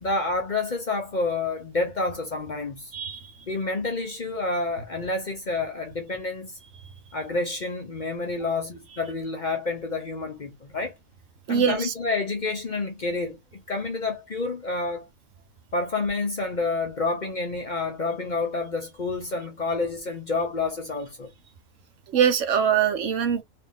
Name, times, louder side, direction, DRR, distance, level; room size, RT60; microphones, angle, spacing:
voice 1, 0.0-2.9 3.5-6.6 7.1-10.9 11.5-13.4 13.7-15.1 15.7-21.3, left 3 dB, 40° left, 0.8 m, -29 dB
voice 2, 2.9-3.3 11.5-11.9 22.1-23.4, right 8 dB, 70° right, 1.1 m, -22 dB
4.1 x 2.7 x 3.5 m
omnidirectional pair, 1.4 m